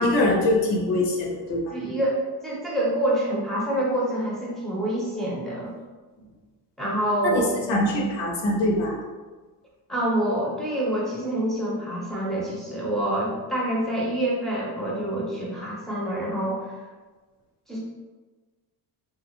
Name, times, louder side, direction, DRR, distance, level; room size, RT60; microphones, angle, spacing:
voice 1, 0.0-1.7 7.2-8.9, left 1 dB, 75° left, -1 dB, 0.8 m, -23 dB
voice 2, 1.7-5.7 6.8-7.5 9.9-16.7 17.7-17.8, right 1 dB, ahead, -5 dB, 0.6 m, -26 dB
3.3 x 2.4 x 3.0 m, 1.3 s
cardioid pair, 165°, 42 cm